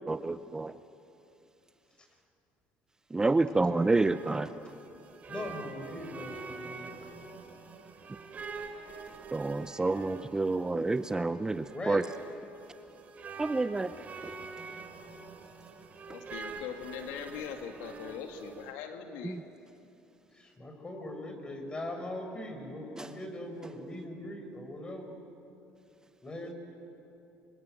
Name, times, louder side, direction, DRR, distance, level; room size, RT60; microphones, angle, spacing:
voice 1, 0.1-0.7 3.1-4.6 9.3-12.0 13.4-13.9 19.2-19.4 23.0-23.1, right 3 dB, 15° right, 12 dB, 0.6 m, -29 dB
voice 2, 3.4-3.9 5.3-6.9 11.5-12.0 20.3-25.1 26.2-26.5, left 1 dB, 20° left, 4 dB, 5.7 m, -41 dB
sound 1, 3.4-18.7, right 4 dB, 40° right, 3.5 m, -46 dB
voice 3, 16.1-19.4, left 7 dB, 85° left, 5 dB, 2.2 m, -41 dB
26.5 x 24.0 x 9.3 m, 2.8 s
supercardioid pair, 95°, 4 cm